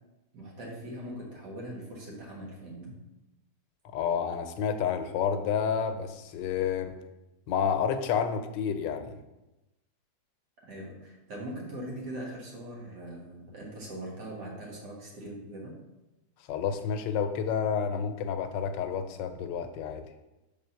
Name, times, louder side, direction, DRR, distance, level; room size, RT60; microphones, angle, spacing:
voice 1, 0.3-3.0 10.6-15.7, right 1 dB, 70° right, -3 dB, 2.2 m, -41 dB
voice 2, 3.9-6.9 7.5-9.1 16.5-20.0, left 7 dB, 90° left, 8 dB, 1.3 m, -29 dB
5.5 x 3.7 x 5.6 m, 1.0 s
omnidirectional pair, 1.9 m